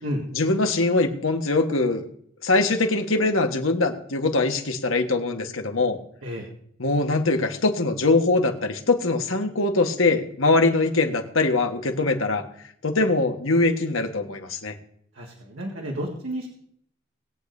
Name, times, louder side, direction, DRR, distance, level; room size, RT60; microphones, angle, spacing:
voice 1, 0.3-2.0 2.4-6.0 6.8-12.4 12.8-14.8, left 3 dB, 85° left, 5 dB, 1.4 m, -22 dB
voice 2, 15.1-16.5, equal, 85° right, -1 dB, 1.8 m, -31 dB
20.5 x 8.5 x 2.7 m, 0.68 s
head